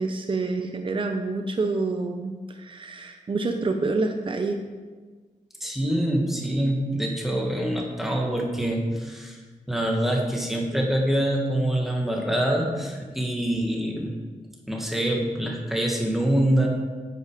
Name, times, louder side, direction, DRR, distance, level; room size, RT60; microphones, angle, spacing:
voice 1, 0.0-4.6, right 3 dB, 40° right, 4 dB, 0.8 m, -27 dB
voice 2, 5.6-9.4 9.7-14.1 14.7-16.7, right 1 dB, ahead, -1 dB, 2.1 m, -25 dB
10.5 x 8.2 x 5.1 m, 1.4 s
wide cardioid pair, 130°, 14 cm